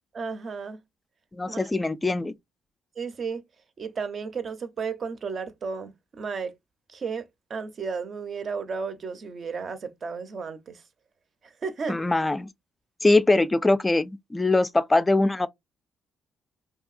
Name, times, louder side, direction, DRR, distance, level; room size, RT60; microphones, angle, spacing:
voice 1, 0.1-0.8 1.5-1.7 3.0-3.4 3.8-6.5 6.9-10.8 11.4-12.0, right 5 dB, 50° right, 0.6 m, -33 dB
voice 2, 1.3-2.3 11.9-12.5 13.0-15.5, left 2 dB, 15° left, 0.3 m, -22 dB
2.7 x 2.5 x 2.4 m
cardioid pair, 90°, 0 cm